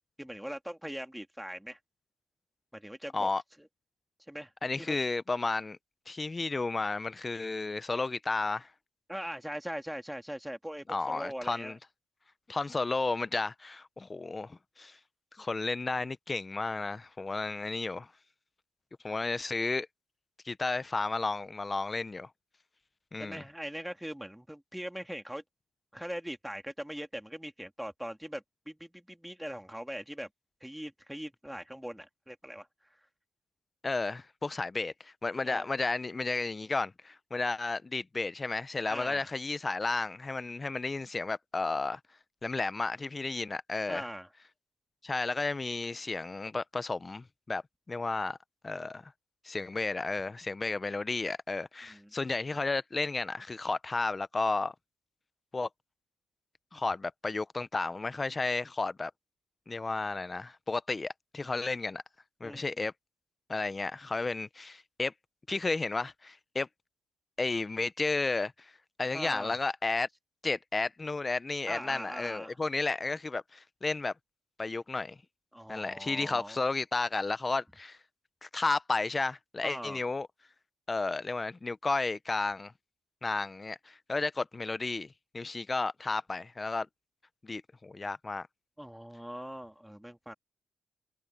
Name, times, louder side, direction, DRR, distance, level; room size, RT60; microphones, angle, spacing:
voice 1, 0.2-1.8 2.7-3.3 3.6-3.7 4.3-4.5 4.8-5.0 9.1-11.8 23.2-25.4 25.9-30.3 30.6-33.0 35.4-35.7 38.9-39.3 43.9-44.3 51.9-52.1 62.4-62.6 69.1-69.6 71.7-72.6 75.5-76.6 79.6-80.0 88.8-90.3, equal, 5° right, 2.3 m, -41 dB
voice 2, 4.6-5.8 6.1-8.7 10.9-11.8 12.5-15.0 15.4-18.1 19.0-19.9 20.4-22.3 23.1-23.4 33.8-42.0 42.4-44.1 45.0-47.6 47.9-48.4 48.6-49.1 49.4-54.7 55.5-55.7 56.7-59.1 59.7-62.0 62.4-62.9 63.5-65.1 65.5-66.7 67.4-68.7 69.0-70.1 70.4-74.1 74.6-75.2 75.7-78.0 78.4-80.3 80.9-82.7 83.2-86.9 87.4-88.5, left 3 dB, 25° left, 0.8 m, -33 dB
cardioid pair, 90°, 0 cm